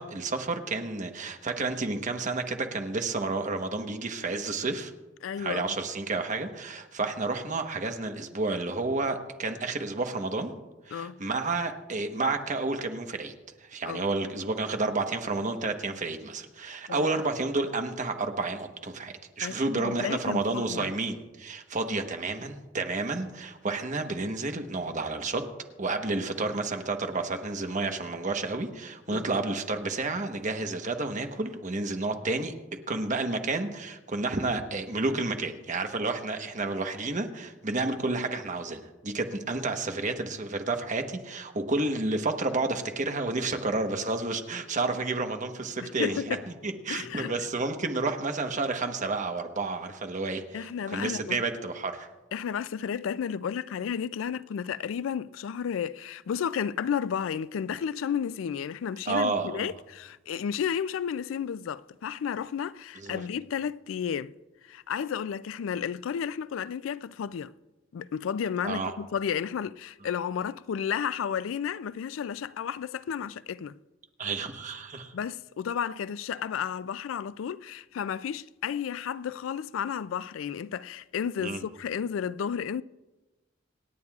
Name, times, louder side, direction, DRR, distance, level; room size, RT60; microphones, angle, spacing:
voice 1, 0.0-4.9 5.4-10.5 10.8-13.3 13.6-25.4 25.8-32.5 32.9-46.4 46.6-52.1 59.1-59.7 63.0-63.2 68.6-68.9 74.2-75.1 81.4-81.6, right 3 dB, 40° right, 1.1 m, -30 dB
voice 2, 5.2-5.8 10.9-11.2 13.9-14.0 16.9-17.1 19.4-20.9 29.1-29.2 46.0-46.4 46.9-47.3 50.5-51.4 52.3-64.3 64.6-67.5 67.9-73.8 75.1-82.8, left 8 dB, 85° left, 0.3 m, -32 dB
27.0 x 9.5 x 2.4 m
head